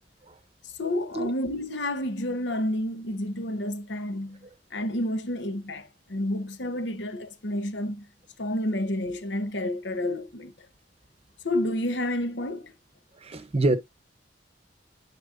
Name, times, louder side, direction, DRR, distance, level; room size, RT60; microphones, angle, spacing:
voice 1, 0.8-8.1 8.4-10.7 11.4-12.7, left 1 dB, 75° left, 1.2 m, -30 dB
voice 2, 13.2-13.8, right 2 dB, 35° right, 0.8 m, -25 dB
10.5 x 4.3 x 2.6 m
head